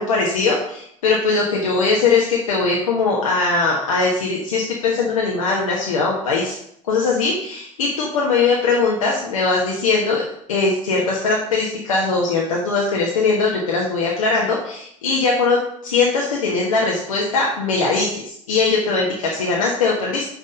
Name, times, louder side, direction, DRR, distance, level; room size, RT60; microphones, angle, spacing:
voice 1, 0.0-6.6 6.9-10.2 10.5-20.3, left 4 dB, 85° left, -3 dB, 1.1 m, -20 dB
6.0 x 5.3 x 5.2 m, 0.72 s
hypercardioid pair, 65°, 17 cm